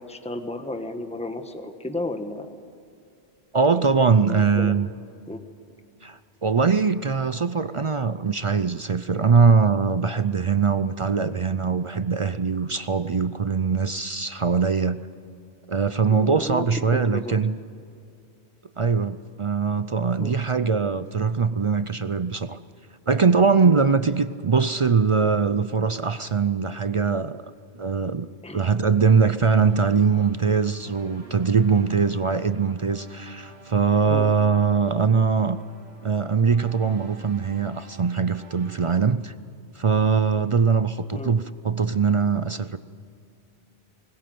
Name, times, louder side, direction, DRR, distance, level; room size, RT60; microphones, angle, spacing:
voice 1, 0.0-2.5 3.7-4.7 5.3-5.4 16.1-16.6 17.1-17.4 20.2-20.4 23.6-23.8 28.4-28.6 34.1-34.3 41.1-41.3, left 2 dB, 5° left, 7 dB, 1.2 m, -33 dB
voice 2, 3.5-4.9 6.0-15.0 15.7-17.6 18.8-22.6 23.1-27.4 27.8-28.3 28.5-35.6 36.0-39.3 39.8-42.8, right 5 dB, 40° right, 13 dB, 0.4 m, -22 dB
sound 1, 29.5-38.9, right 3 dB, 75° right, 2.1 m, -49 dB
20.5 x 20.0 x 7.8 m, 2.5 s
omnidirectional pair, 1.1 m